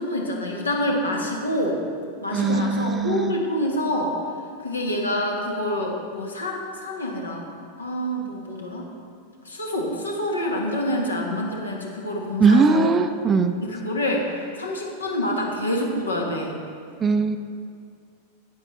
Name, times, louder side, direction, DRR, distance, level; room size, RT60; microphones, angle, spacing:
voice 1, 0.0-1.8 2.2-4.1 4.6-7.4 7.8-8.9 9.4-12.9 13.6-16.6, left 1 dB, 75° left, 0 dB, 1.4 m, -27 dB
voice 2, 2.3-3.3 12.4-13.6 17.0-17.4, right 4 dB, 20° right, 9 dB, 0.4 m, -20 dB
11.5 x 8.5 x 3.2 m, 2.3 s
figure-of-eight pair, 90°, 0 cm